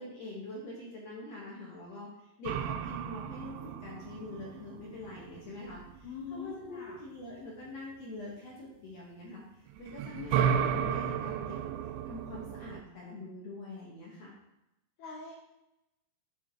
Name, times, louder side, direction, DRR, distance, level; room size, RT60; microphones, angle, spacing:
voice 1, 0.0-2.1 2.4-9.4 9.8-11.6 12.1-14.3, left 2 dB, 60° left, -4 dB, 1.8 m, -44 dB
sound 1, 2.5-6.2 9.7-12.8, right 8 dB, 90° right, 2.0 m, -33 dB
voice 2, 6.0-7.0 10.1-10.8 15.0-15.4, left 5 dB, 80° left, 0 dB, 1.8 m, -43 dB
9.8 x 3.6 x 4.6 m, 0.90 s
omnidirectional pair, 4.6 m